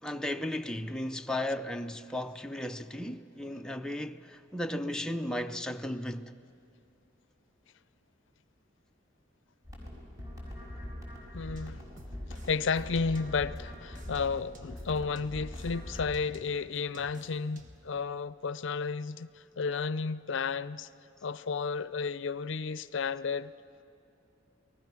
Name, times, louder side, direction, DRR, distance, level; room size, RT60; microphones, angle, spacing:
voice 1, 0.0-6.3, left 1 dB, 5° left, 0.5 m, -35 dB
sound 1, 9.6-16.0, left 1 dB, 20° right, 5.6 m, -43 dB
voice 2, 11.3-11.9 12.3-20.9 21.2-23.5, left 5 dB, 65° left, 0.5 m, -32 dB
sound 2, 11.6-13.6 14.0-17.9, equal, 40° right, 1.4 m, -51 dB
29.0 x 19.5 x 6.1 m
head